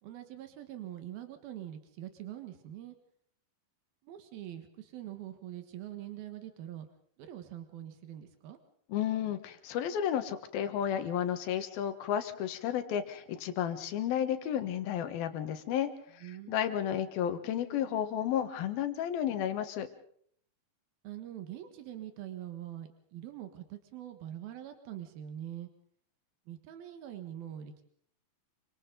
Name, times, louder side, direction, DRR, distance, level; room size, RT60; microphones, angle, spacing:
voice 1, 0.0-2.9 4.0-6.9 7.2-8.6 16.2-16.7 21.0-25.7 26.5-27.8, right 12 dB, 90° right, 7 dB, 3.4 m, -44 dB
voice 2, 8.9-19.9, left 9 dB, 90° left, 9 dB, 3.3 m, -32 dB
28.5 x 24.5 x 3.9 m, 0.62 s
omnidirectional pair, 4.1 m